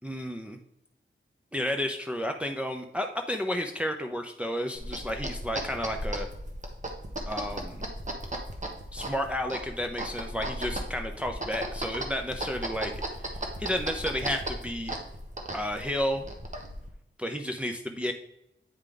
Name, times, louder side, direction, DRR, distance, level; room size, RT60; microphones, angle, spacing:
voice 1, 0.0-0.6 1.5-6.3 7.3-7.8 8.9-12.9 13.6-14.9 15.5-16.2 17.2-18.1, equal, 5° right, 3 dB, 0.6 m, -32 dB
sound 1, 4.7-16.9, right 1 dB, 35° right, 1.4 m, -36 dB
9.0 x 4.8 x 3.8 m, 0.83 s
wide cardioid pair, 70°, 21 cm